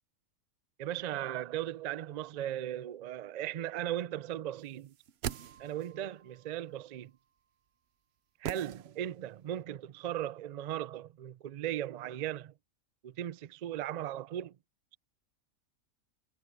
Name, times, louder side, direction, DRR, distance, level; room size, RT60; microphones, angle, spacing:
voice 1, 0.8-4.9 5.6-7.1 8.4-12.5 13.0-14.6, right 11 dB, 80° right, 0.3 m, -37 dB
sound 1, 4.8-6.1 8.4-9.4 9.6-9.7, right 10 dB, 60° right, 0.9 m, -41 dB
sound 2, 5.3-7.8, right 8 dB, 90° left, 7.7 m, -64 dB
omnidirectional pair, 1.3 m